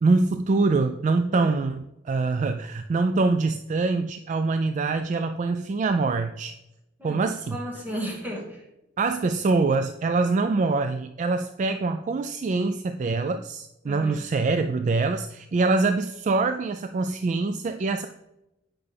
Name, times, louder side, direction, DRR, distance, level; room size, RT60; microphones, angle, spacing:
voice 1, 0.0-6.5 7.0-7.6 9.0-18.1, right 3 dB, 40° right, 7 dB, 0.3 m, -24 dB
voice 2, 7.5-8.6 13.8-14.2, equal, 10° right, -3 dB, 1.8 m, -34 dB
8.6 x 5.8 x 3.4 m, 0.89 s
head